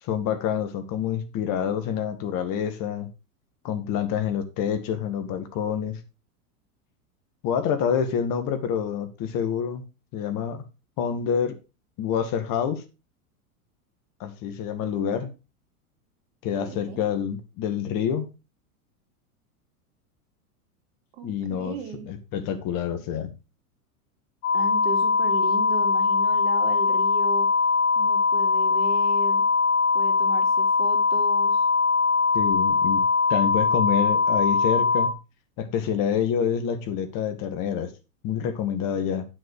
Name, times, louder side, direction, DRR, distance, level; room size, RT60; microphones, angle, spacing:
voice 1, 0.0-3.1 3.6-6.0 7.4-9.8 10.1-10.7 11.0-11.6 12.0-12.8 14.2-15.3 16.4-18.3 21.2-21.8 22.1-23.3 32.3-33.0 33.3-35.2 35.6-37.9 38.2-39.3, left 8 dB, 45° left, 2.1 m, -27 dB
voice 2, 16.6-17.0 21.1-22.1 24.5-27.5 28.0-29.5 29.9-31.6, right 5 dB, 55° right, 2.7 m, -36 dB
sound 1, 24.4-35.1, left 4 dB, 65° left, 2.3 m, -21 dB
11.0 x 6.5 x 4.7 m
hypercardioid pair, 100°, 45 cm